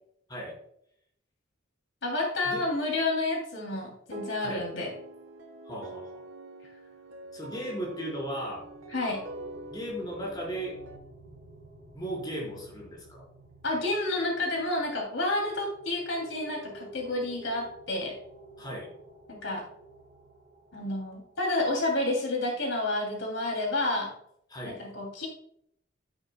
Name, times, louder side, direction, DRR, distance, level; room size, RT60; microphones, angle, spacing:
voice 1, 2.0-4.9 8.9-9.2 13.6-18.1 19.3-19.6 20.7-24.1 24.7-25.3, left 2 dB, 85° left, -1 dB, 3.2 m, -30 dB
sound 1, 4.1-11.0, right 2 dB, 90° right, 1.4 m, -45 dB
voice 2, 5.6-6.1 7.3-8.6 9.7-10.7 11.9-13.2 18.6-18.9 24.5-24.8, right 1 dB, 20° left, -4 dB, 4.7 m, -36 dB
sound 2, 7.2-22.0, right 1 dB, 45° right, 4.6 m, -52 dB
13.5 x 9.7 x 2.3 m, 0.71 s
head